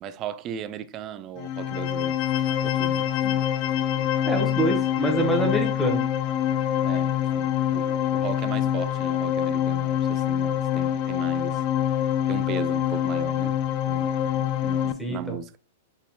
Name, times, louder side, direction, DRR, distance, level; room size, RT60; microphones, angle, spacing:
voice 1, 0.0-2.1 2.6-3.1 5.8-5.9 6.8-11.6 12.3-13.6 13.9-15.6, right 9 dB, 35° right, 0.4 m, -37 dB
sound 1, 1.4-14.9, left 10 dB, 40° left, 0.3 m, -25 dB
voice 2, 4.3-6.0 15.0-15.4, right 1 dB, 5° left, 1.2 m, -26 dB
4.4 x 4.0 x 2.3 m
figure-of-eight pair, 105°, 0 cm